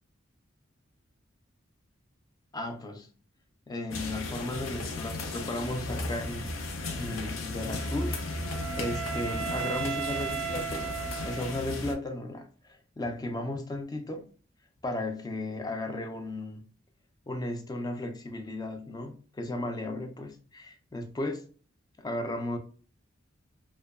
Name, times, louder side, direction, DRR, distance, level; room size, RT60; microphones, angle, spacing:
voice 1, 2.5-3.1 3.7-6.5 6.9-8.2 8.7-11.0 11.2-14.3 14.8-16.7 17.3-21.5 22.0-22.6, left 1 dB, 20° left, 0.3 m, -35 dB
sound 1, 3.9-11.9, left 2 dB, 80° left, 0.5 m, -35 dB
Wind instrument woodwind instrument, 7.7-11.9, right 8 dB, 75° right, 0.3 m, -36 dB
2.6 x 2.2 x 2.3 m
head